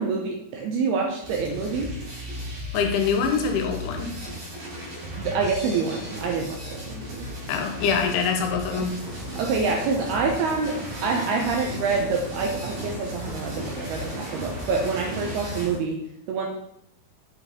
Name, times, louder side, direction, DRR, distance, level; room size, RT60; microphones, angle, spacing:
voice 1, 0.0-1.9 5.2-6.6 6.9-7.3 8.7-8.9 9.4-16.0 16.3-16.5, right 4 dB, 75° right, 1 dB, 2.4 m, -26 dB
sound 1, 1.2-15.7, left 1 dB, 45° right, 5.1 m, -36 dB
voice 2, 2.7-4.1 7.5-9.0, left 6 dB, 80° left, 4 dB, 3.4 m, -24 dB
sound 2, 9.0-15.8, right 2 dB, 15° right, 1.7 m, -38 dB
8.4 x 5.3 x 5.3 m, 0.76 s
omnidirectional pair, 5.5 m